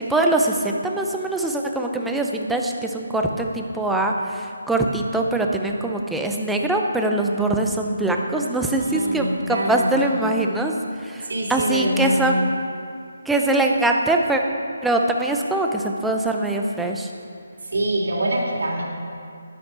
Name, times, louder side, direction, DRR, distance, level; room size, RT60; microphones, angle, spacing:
voice 1, 0.1-10.7 11.0-12.5 13.3-14.4 14.8-17.1, right 2 dB, ahead, 1 dB, 0.6 m, -22 dB
voice 2, 8.8-10.2 11.2-12.4 17.7-18.8, right 1 dB, 75° right, -3 dB, 3.2 m, -25 dB
12.0 x 9.8 x 6.1 m, 2.3 s
hypercardioid pair, 170°, 0 cm